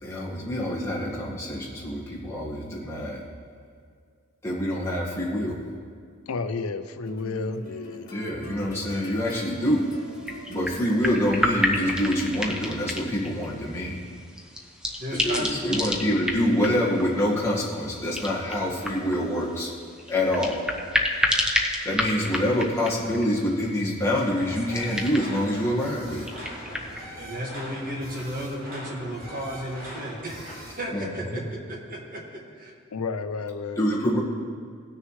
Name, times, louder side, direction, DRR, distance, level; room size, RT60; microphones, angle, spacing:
voice 1, 0.0-3.2 4.4-5.6 8.1-9.8 10.5-14.0 15.2-19.7 20.1-20.6 21.8-26.2 30.9-31.0 31.3-31.4 33.8-34.2, equal, 10° left, -5 dB, 1.6 m, -26 dB
voice 2, 6.3-8.1 32.9-33.8, left 4 dB, 80° left, 10 dB, 0.5 m, -31 dB
sound 1, 7.1-12.4, left 1 dB, 40° left, 2.0 m, -42 dB
sound 2, 9.4-27.0, left 1 dB, 5° right, 0.7 m, -31 dB
voice 3, 15.0-15.9 27.2-32.7, equal, 40° right, -2 dB, 1.8 m, -34 dB
sound 3, 24.3-30.8, equal, 65° right, 2.9 m, -41 dB
18.5 x 6.5 x 3.2 m, 2.2 s
head